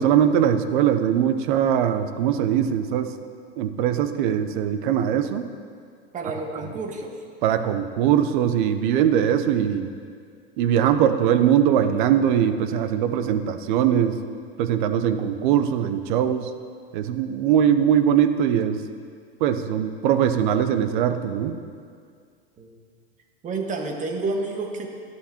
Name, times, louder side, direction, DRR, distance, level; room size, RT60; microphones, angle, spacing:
voice 1, 0.0-3.1 3.6-5.4 7.4-9.9 10.6-14.2 14.6-16.5 16.9-18.8 19.4-21.6, right 9 dB, 50° right, 10 dB, 0.9 m, -21 dB
voice 2, 6.1-7.2 22.6-22.7 23.4-24.9, right 3 dB, 25° right, 2 dB, 1.6 m, -29 dB
18.0 x 11.5 x 3.0 m, 2.2 s
hypercardioid pair, 100°, 31 cm